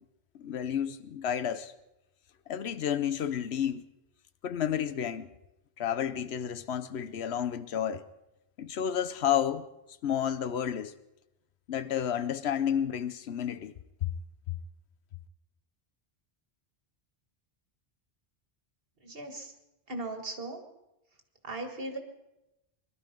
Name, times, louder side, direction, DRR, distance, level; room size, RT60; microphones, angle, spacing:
voice 1, 0.4-1.7 2.5-3.8 4.4-5.3 5.8-8.0 8.6-9.6 10.0-10.9 11.7-13.7 14.0-14.1 14.5-14.6, left 9 dB, 80° left, 1.0 m, -31 dB
voice 2, 19.0-19.5 19.9-20.6 21.4-22.0, right 2 dB, 60° right, 1.9 m, -38 dB
21.0 x 12.0 x 5.2 m
omnidirectional pair, 1.1 m